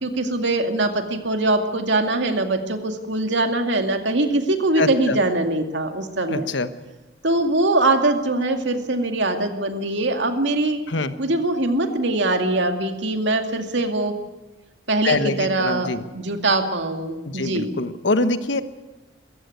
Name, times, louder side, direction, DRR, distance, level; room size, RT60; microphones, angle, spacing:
voice 1, 0.0-6.5 7.2-10.8 11.2-14.1 14.9-17.7, right 2 dB, 80° right, 5 dB, 2.3 m, -22 dB
voice 2, 4.8-5.2 6.3-6.7 10.9-11.1 15.0-16.0 17.2-18.6, left 3 dB, 80° left, 11 dB, 1.3 m, -24 dB
22.5 x 15.0 x 9.6 m, 1.1 s
head